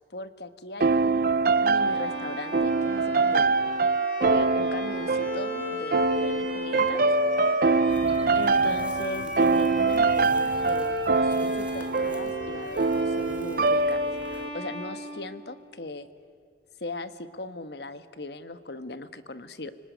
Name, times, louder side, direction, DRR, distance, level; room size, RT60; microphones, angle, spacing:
voice 1, 0.1-1.2 1.6-3.5 4.2-7.0 8.3-10.9 11.2-14.0 14.3-16.1 16.8-19.7, left 2 dB, 70° left, 11 dB, 1.4 m, -38 dB
sound 1, 0.8-14.5, right 3 dB, 55° right, 0.6 m, -24 dB
Bowed string instrument, 1.7-15.8, left 2 dB, 50° left, 6.4 m, -38 dB
sound 2, 7.9-14.4, right 1 dB, 5° right, 1.6 m, -46 dB
30.0 x 19.5 x 9.4 m, 2.2 s
head